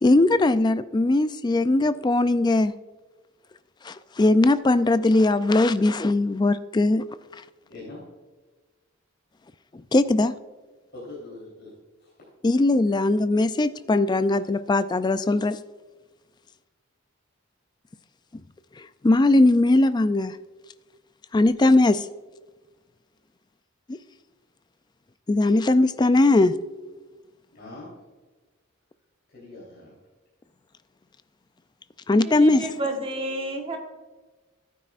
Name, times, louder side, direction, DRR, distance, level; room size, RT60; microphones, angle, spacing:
voice 1, 0.0-2.7 3.8-7.0 9.7-10.3 12.4-15.6 18.8-20.4 21.3-22.1 23.9-24.0 25.3-26.5 32.1-32.7, left 2 dB, 20° left, 13 dB, 0.3 m, -20 dB
voice 2, 7.6-8.0 10.9-11.7 12.0-12.1 27.5-27.9 29.3-30.0, left 2 dB, 50° left, -7 dB, 3.5 m, -42 dB
voice 3, 32.2-33.8, right 1 dB, 25° right, 2 dB, 1.4 m, -30 dB
14.5 x 9.2 x 2.5 m, 1.3 s
head